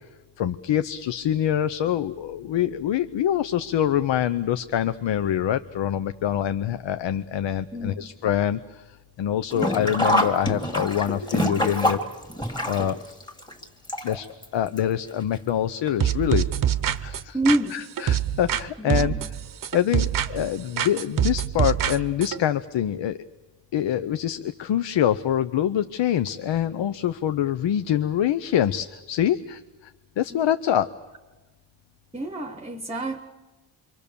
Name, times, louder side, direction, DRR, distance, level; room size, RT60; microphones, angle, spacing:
voice 1, 0.4-12.0 12.7-13.0 14.0-14.3 14.5-16.5 16.9-17.4 17.7-19.1 19.7-23.2 23.7-29.9 30.2-30.9, left 10 dB, 75° left, 11 dB, 0.8 m, -25 dB
Sink (filling or washing), 9.5-14.4 14.8-14.9 15.9-16.0 16.3-16.4, equal, 10° left, 2.0 m, -26 dB
sound 1, 16.0-18.6 18.9-20.5 20.8-22.4, right 10 dB, 45° right, 0.8 m, -25 dB
voice 2, 17.3-17.7 18.8-19.3 30.3-30.4 32.1-33.2, right 1 dB, 15° right, 6 dB, 1.0 m, -27 dB
28.0 x 24.5 x 6.9 m, 1.2 s
wide cardioid pair, 175°, 45 cm